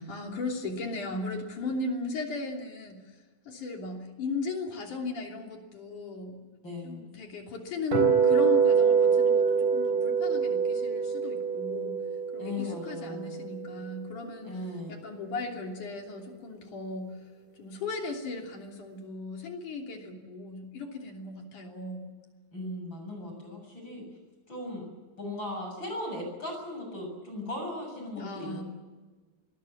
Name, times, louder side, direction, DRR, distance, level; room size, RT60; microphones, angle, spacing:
voice 1, 0.0-3.0 3.5-6.4 6.8-12.0 12.3-14.6 14.9-17.2 17.6-22.2 28.2-28.6, left 3 dB, 50° left, 2 dB, 4.3 m, -36 dB
voice 2, 6.6-7.1 12.4-13.4 14.4-15.0 22.5-24.0 24.5-24.9 25.2-28.6, left 2 dB, 25° left, 3 dB, 8.1 m, -38 dB
sound 1, 7.9-14.0, right 6 dB, 50° right, 5.4 m, -25 dB
25.0 x 20.0 x 7.4 m, 1.3 s
omnidirectional pair, 4.7 m